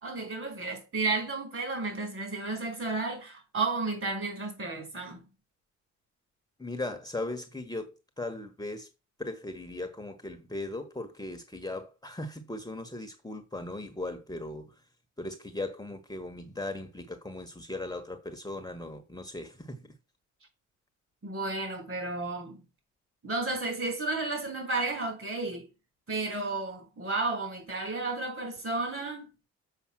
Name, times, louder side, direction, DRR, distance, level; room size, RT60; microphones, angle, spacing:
voice 1, 0.0-5.3 21.2-22.6 23.2-25.7 26.1-29.3, right 3 dB, 45° right, 4.8 m, -32 dB
voice 2, 6.6-8.9 9.2-14.8 15.2-19.9, left 2 dB, 10° left, 1.4 m, -38 dB
7.2 x 5.3 x 6.3 m
cardioid pair, 90°, 30 cm